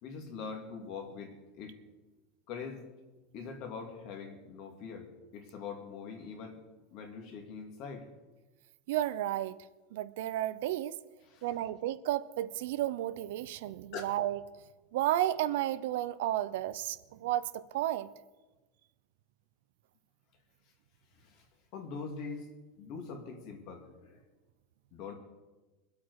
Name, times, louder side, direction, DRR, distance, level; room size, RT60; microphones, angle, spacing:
voice 1, 0.0-1.8 2.5-2.9 3.3-6.6 6.9-8.1 11.2-11.6 13.9-14.0 21.1-21.5 21.7-22.5 22.8-24.2 24.9-25.1, left 5 dB, 40° left, 2.4 m, -43 dB
voice 2, 8.9-9.6 9.9-11.0 11.4-14.4 14.9-18.1, right 13 dB, 65° right, 0.6 m, -32 dB
23.5 x 8.3 x 4.8 m
supercardioid pair, 175°, 0 cm